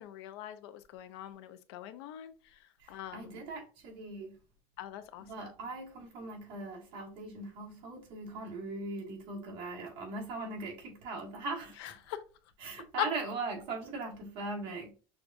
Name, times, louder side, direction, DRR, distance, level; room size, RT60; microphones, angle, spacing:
voice 1, 0.0-2.6 2.9-3.4 4.8-5.5 11.8-12.2 13.0-13.1, left 12 dB, 85° left, 0.5 m, -41 dB
voice 2, 2.8-4.4 5.2-12.0 12.6-14.9, right 3 dB, 40° right, 1.5 m, -40 dB
6.3 x 2.4 x 2.5 m
cardioid pair, 180°, 13 cm